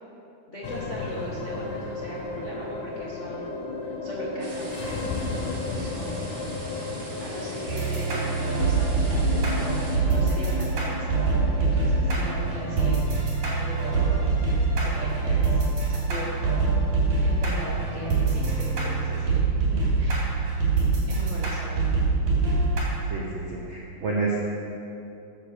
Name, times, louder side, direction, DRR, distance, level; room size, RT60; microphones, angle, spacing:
voice 1, 0.5-3.6 3.8-6.3 6.6-6.9 7.2-14.3 14.8-15.6 15.9-16.6 17.2-19.4 19.7-20.3 21.1-21.9, left 1 dB, 85° left, -6 dB, 0.6 m, -38 dB
sound 1, 0.6-19.1, left 3 dB, 65° left, 2.3 m, -35 dB
sound 2, 4.4-10.0, right 1 dB, 25° right, 1.5 m, -42 dB
sound 3, 7.7-22.8, right 4 dB, 55° right, 4.5 m, -24 dB
voice 2, 23.1-24.4, right 3 dB, 70° right, -4 dB, 1.1 m, -29 dB
12.5 x 8.6 x 6.7 m, 2.8 s
omnidirectional pair, 4.2 m